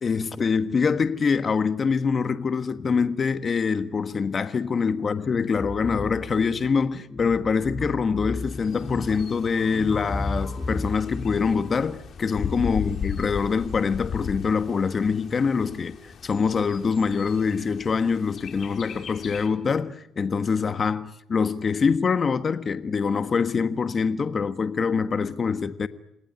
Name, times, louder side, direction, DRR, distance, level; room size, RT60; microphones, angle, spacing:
voice 1, 0.0-25.9, left 5 dB, 40° left, 1.4 m, -24 dB
sound 1, 5.6-12.6, left 2 dB, 25° left, 6.7 m, -34 dB
Bird, 8.5-19.5, left 7 dB, 60° left, 4.3 m, -37 dB
28.0 x 19.5 x 9.5 m
cardioid pair, 90°, 0 cm